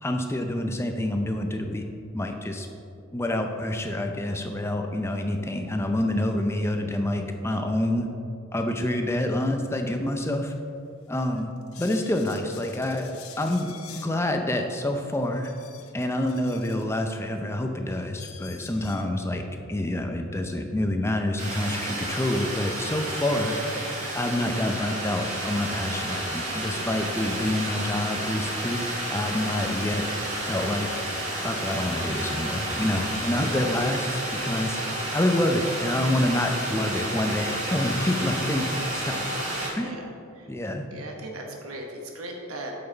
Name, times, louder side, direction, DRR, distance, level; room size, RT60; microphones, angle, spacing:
voice 1, 0.0-1.8 2.1-2.7 3.1-8.1 8.5-10.5 11.1-11.5 11.8-13.1 13.4-15.5 15.9-19.4 19.7-23.6 24.1-30.0 30.5-30.9 31.4-34.8 35.1-38.6 38.9-39.1 39.7-39.9 40.5-40.8, left 1 dB, 10° left, 4 dB, 0.5 m, -27 dB
sound 1, 10.5-10.6 11.2-14.2 14.9-17.0 17.6-17.7 18.2-19.0, left 8 dB, 85° left, 0.7 m, -47 dB
sound 2, 21.4-39.7, right 1 dB, 35° right, 1.8 m, -31 dB
voice 2, 39.1-39.4 39.8-40.5 40.9-42.7, right 1 dB, 85° right, 1 dB, 1.1 m, -39 dB
8.6 x 6.0 x 3.9 m, 2.6 s
head